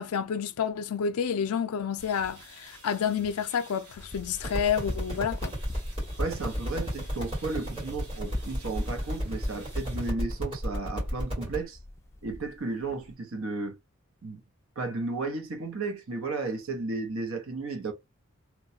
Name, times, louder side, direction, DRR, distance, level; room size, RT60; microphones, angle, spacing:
voice 1, 0.0-5.5, left 7 dB, 85° left, 0.4 m, -29 dB
sound 1, 2.0-10.1, equal, 50° right, 1.9 m, -50 dB
sound 2, 4.0-13.1, left 1 dB, 10° left, 0.3 m, -46 dB
sound 3, 4.4-11.6, equal, 25° right, 1.8 m, -33 dB
voice 2, 6.2-11.8 12.2-13.8 14.2-14.4 14.8-17.9, right 3 dB, 70° right, 0.7 m, -34 dB
2.9 x 2.2 x 2.7 m
head